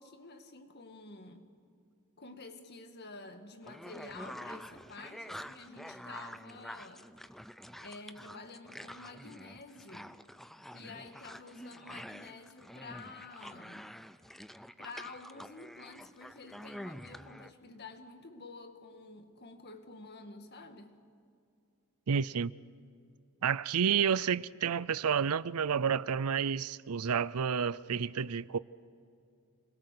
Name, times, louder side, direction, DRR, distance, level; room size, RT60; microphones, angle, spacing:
voice 1, 0.0-1.5 2.2-7.1 7.8-10.2 10.7-13.9 14.8-21.0, left 3 dB, 50° left, 1.9 m, -50 dB
sound 1, 3.6-17.5, equal, ahead, 0.5 m, -47 dB
voice 2, 22.1-22.5 23.4-28.6, right 7 dB, 85° right, 0.5 m, -30 dB
29.0 x 21.5 x 6.8 m
head